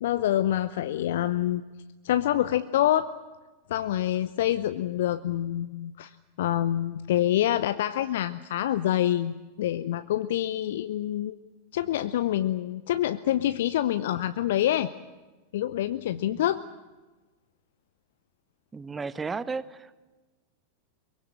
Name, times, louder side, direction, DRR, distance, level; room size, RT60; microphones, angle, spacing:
voice 1, 0.0-1.6 2.0-3.1 3.7-11.4 11.7-14.9 15.5-16.6, left 12 dB, 55° left, 12 dB, 0.7 m, -26 dB
voice 2, 18.7-19.9, right 4 dB, 15° right, 16 dB, 1.0 m, -34 dB
23.0 x 23.0 x 8.8 m, 1.2 s
figure-of-eight pair, 90°, 0 cm